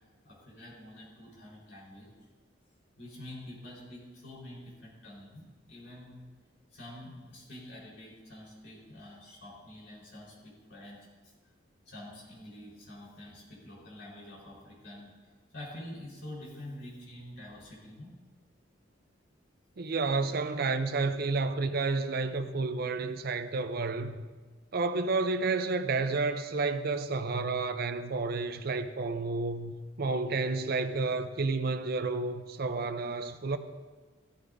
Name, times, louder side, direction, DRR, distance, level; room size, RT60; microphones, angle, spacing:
voice 1, 0.2-2.1 3.0-6.1 6.7-11.3 11.9-18.1, left 1 dB, 65° left, 4.4 m, -47 dB
voice 2, 19.8-24.2 24.7-33.6, right 3 dB, 55° right, 0.6 m, -30 dB
14.0 x 13.0 x 2.7 m
head